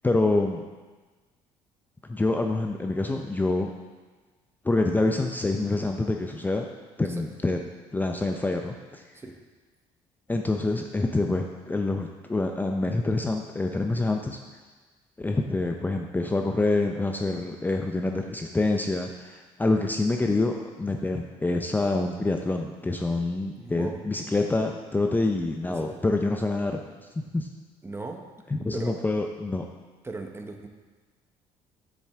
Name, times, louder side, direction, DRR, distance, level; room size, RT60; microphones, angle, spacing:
voice 1, 0.0-0.6 2.1-3.7 4.6-6.7 7.0-7.6 7.9-9.0 10.3-14.4 15.2-26.8 27.2-27.5 28.5-29.6, left 2 dB, 15° left, 3 dB, 0.6 m, -26 dB
voice 2, 23.6-24.0 25.7-26.0 27.8-28.3 28.7-28.9 30.0-30.7, right 3 dB, 20° right, 4 dB, 0.9 m, -37 dB
7.3 x 7.1 x 3.6 m, 1.3 s
supercardioid pair, 85°, 13 cm